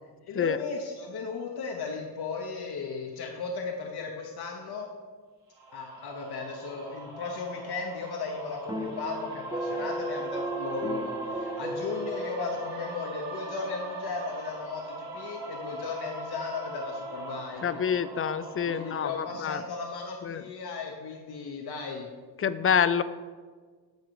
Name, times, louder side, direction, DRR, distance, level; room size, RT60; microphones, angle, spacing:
voice 1, 0.3-4.9 5.7-17.8 18.6-22.1, left 4 dB, 60° left, 1 dB, 1.1 m, -36 dB
sound 1, 5.6-19.1, right 2 dB, 90° right, 1.8 m, -40 dB
sound 2, 8.7-13.1, right 1 dB, 10° right, 0.7 m, -35 dB
voice 2, 17.6-19.6 20.3-20.4 22.4-23.0, left 7 dB, 30° left, 13 dB, 0.5 m, -27 dB
9.4 x 6.4 x 4.8 m, 1.5 s
cardioid pair, 90°, 42 cm